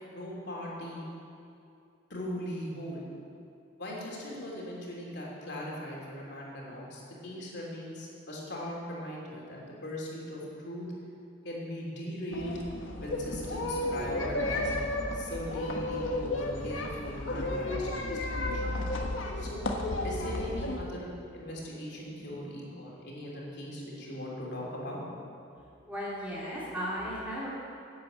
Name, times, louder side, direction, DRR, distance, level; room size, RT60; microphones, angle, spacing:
voice 1, 0.1-1.0 2.1-3.0 3.8-10.8 11.4-12.6 13.0-14.7 15.1-18.8 19.4-19.6 20.0-25.0, equal, 60° left, -3 dB, 3.1 m, -39 dB
sound 1, 12.3-20.8, left 1 dB, 80° left, 1.4 m, -33 dB
voice 2, 25.9-27.5, equal, 5° right, -8 dB, 2.8 m, -35 dB
10.5 x 8.8 x 8.1 m, 2.6 s
head